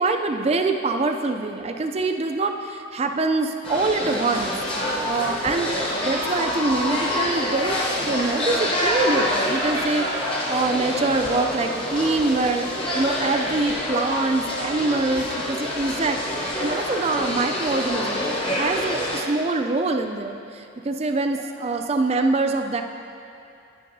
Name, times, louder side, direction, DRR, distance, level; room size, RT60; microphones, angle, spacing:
voice 1, 0.0-4.5 5.0-22.8, right 3 dB, 30° right, 5 dB, 0.4 m, -25 dB
sound 1, 3.6-19.2, left 1 dB, 25° left, 0.9 m, -26 dB
9.9 x 9.1 x 2.7 m, 2.6 s
head